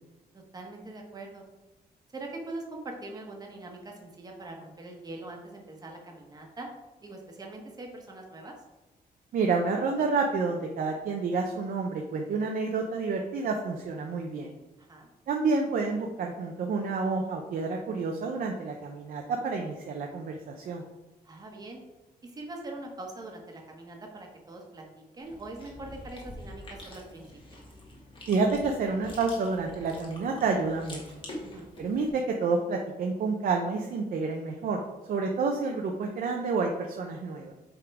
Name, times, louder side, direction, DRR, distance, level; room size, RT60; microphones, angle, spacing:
voice 1, 0.3-1.4 2.1-6.7 7.0-8.5 14.8-15.1 21.2-21.8 22.2-27.2 31.4-31.7, right 2 dB, 25° right, 1 dB, 1.2 m, -42 dB
voice 2, 9.3-14.5 15.3-20.8 28.3-31.0 31.8-34.8 35.1-37.5, right 4 dB, 60° right, 2 dB, 0.7 m, -29 dB
Chewing mastication, 25.2-32.1, left 1 dB, 30° left, 1.5 m, -46 dB
7.8 x 3.8 x 4.8 m, 1.1 s
wide cardioid pair, 175°, 16 cm